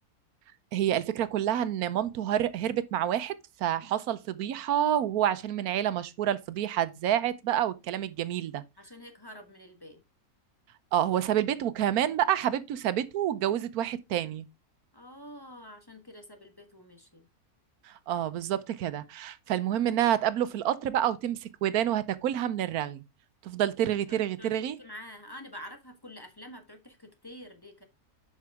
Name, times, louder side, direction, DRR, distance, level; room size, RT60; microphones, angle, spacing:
voice 1, 0.7-8.6 10.9-14.4 17.8-23.0 23.4-24.8, right 11 dB, 90° right, 1.2 m, -28 dB
voice 2, 8.8-10.0 14.9-17.3 24.1-27.8, equal, 15° left, 1.2 m, -47 dB
7.4 x 6.1 x 3.5 m
omnidirectional pair, 1.5 m